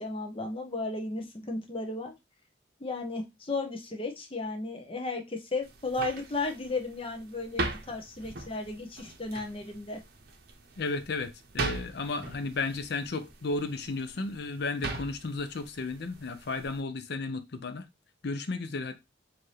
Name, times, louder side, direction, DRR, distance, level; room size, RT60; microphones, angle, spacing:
voice 1, 0.0-2.1 2.8-10.0, left 2 dB, 30° left, 0.8 m, -34 dB
sound 1, 5.6-16.8, right 3 dB, 55° right, 0.7 m, -40 dB
voice 2, 10.8-17.8 18.2-19.0, left 3 dB, 60° left, 0.5 m, -33 dB
4.5 x 2.7 x 3.1 m
head